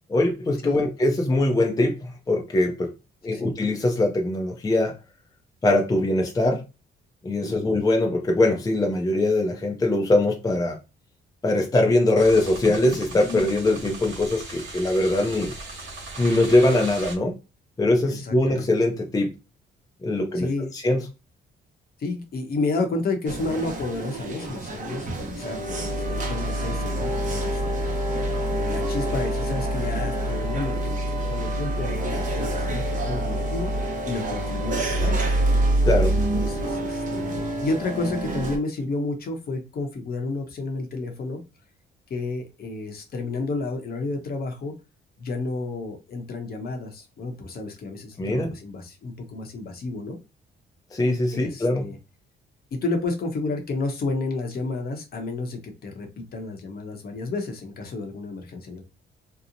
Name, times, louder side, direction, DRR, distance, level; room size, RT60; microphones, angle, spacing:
voice 1, 0.1-2.9 3.2-4.9 5.6-6.6 7.2-10.8 11.4-15.5 16.2-17.4 17.8-19.3 20.0-21.1 35.8-36.2 48.2-48.5 50.9-51.9, left 2 dB, 20° left, 0.5 m, -22 dB
voice 2, 7.4-7.8 18.1-18.7 20.3-20.7 22.0-27.9 28.7-33.7 34.0-35.2 36.1-41.4 42.1-44.7 45.2-50.2 51.3-52.0 52.7-58.8, left 3 dB, 50° left, 0.8 m, -31 dB
sound 1, 12.2-17.2, right 2 dB, 70° right, 0.9 m, -38 dB
sound 2, 23.3-38.6, right 1 dB, 40° right, 0.8 m, -26 dB
2.8 x 2.0 x 2.5 m
cardioid pair, 90°, 20 cm